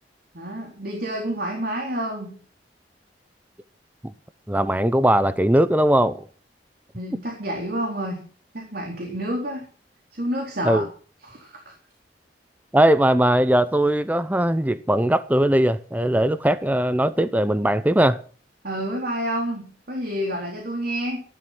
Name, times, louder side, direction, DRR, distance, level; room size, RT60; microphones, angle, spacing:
voice 1, 0.3-2.3 6.9-8.2 8.5-9.7 10.1-10.8 11.2-11.7 18.6-21.2, equal, 60° right, 4.0 m, -29 dB
voice 2, 4.5-6.2 10.7-10.8 12.7-18.2, right 1 dB, 10° right, 0.6 m, -19 dB
15.0 x 12.5 x 6.0 m
head